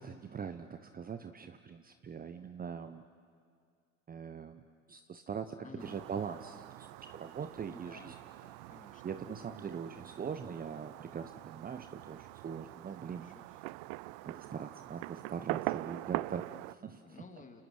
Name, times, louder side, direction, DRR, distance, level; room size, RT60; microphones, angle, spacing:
voice 1, 0.0-3.0 4.1-4.6 4.9-8.1 9.0-13.4 14.2-17.0, right 6 dB, 20° right, 9 dB, 1.0 m, -42 dB
voice 2, 5.6-6.0 7.7-8.1 8.4-9.0 13.1-13.6 17.0-17.6, left 4 dB, 20° left, 4 dB, 3.1 m, -54 dB
Fireworks, 5.8-16.7, right 21 dB, 55° right, 0.6 m, -43 dB
30.0 x 29.5 x 6.4 m, 2.1 s
hypercardioid pair, 75°, 40 cm